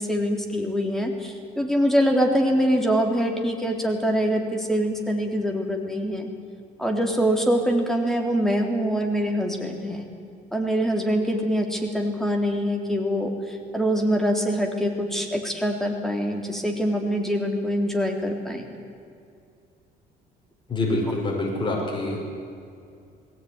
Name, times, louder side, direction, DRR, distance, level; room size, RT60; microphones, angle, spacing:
voice 1, 0.0-6.3 6.8-10.1 10.5-18.6, equal, ahead, 2 dB, 3.6 m, -24 dB
voice 2, 20.7-22.2, left 2 dB, 30° left, -2 dB, 5.6 m, -26 dB
21.0 x 17.0 x 9.9 m, 2.4 s
cardioid pair, 110°, 17 cm